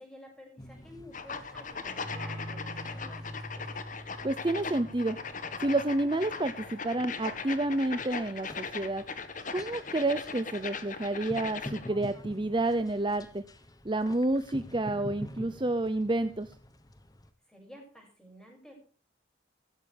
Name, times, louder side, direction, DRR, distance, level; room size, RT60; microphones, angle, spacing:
voice 1, 0.0-4.0 17.5-18.8, equal, 5° left, 1 dB, 6.5 m, -51 dB
sound 1, 0.6-17.3, left 1 dB, 20° left, 1.2 m, -49 dB
sound 2, 1.1-11.9, left 5 dB, 40° left, 1.7 m, -39 dB
sound 3, 2.0-7.4, equal, 90° right, 3.3 m, -45 dB
voice 2, 4.2-5.2 5.6-9.0 9.5-13.4 13.8-16.5, right 2 dB, 25° right, 11 dB, 0.7 m, -29 dB
16.0 x 14.5 x 3.5 m, 0.41 s
head